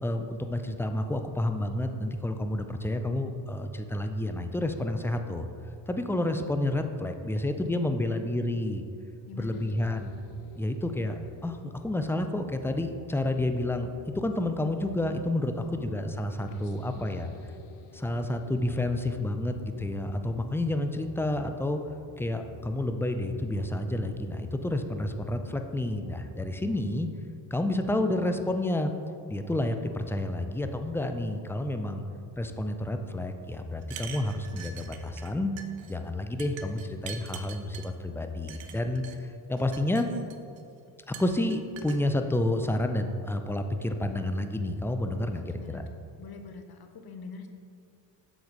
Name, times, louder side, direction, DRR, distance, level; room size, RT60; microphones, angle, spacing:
voice 1, 0.0-5.5 5.9-8.8 9.4-10.1 10.5-17.3 17.9-21.8 22.2-27.1 27.5-28.9 29.3-32.0 32.3-35.5 35.9-40.1 41.1-45.8, left 1 dB, 5° left, 6 dB, 0.4 m, -30 dB
voice 2, 6.7-8.2 9.3-9.8 15.6-16.0 16.4-17.4 45.2-47.5, left 4 dB, 45° left, 6 dB, 0.9 m, -47 dB
sound 1, 9.5-26.7, left 6 dB, 80° left, 0.7 m, -50 dB
sound 2, 33.8-35.3 35.6-35.9 36.4-37.9 38.5-39.2 39.6-40.6 41.1-42.0, right 8 dB, 65° right, 0.7 m, -44 dB
7.1 x 3.8 x 4.7 m, 2.3 s
supercardioid pair, 50°, 50 cm